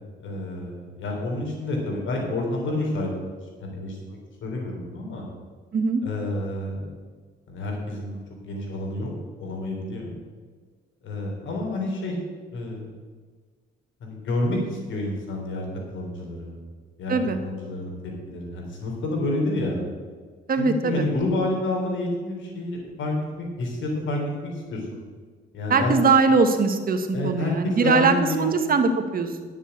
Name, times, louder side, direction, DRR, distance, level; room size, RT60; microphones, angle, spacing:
voice 1, 0.2-3.3 3.6-5.2 6.0-6.9 7.5-9.1 9.4-10.1 11.0-12.2 12.5-12.9 14.0-15.7 15.9-16.6 17.0-19.8 20.6-24.8 25.5-26.0 27.1-28.5, left 1 dB, 75° left, 0 dB, 3.7 m, -29 dB
voice 2, 20.5-21.1 25.7-29.3, right 4 dB, 45° right, 7 dB, 1.4 m, -21 dB
10.0 x 7.3 x 8.1 m, 1.5 s
cardioid pair, 90°, 20 cm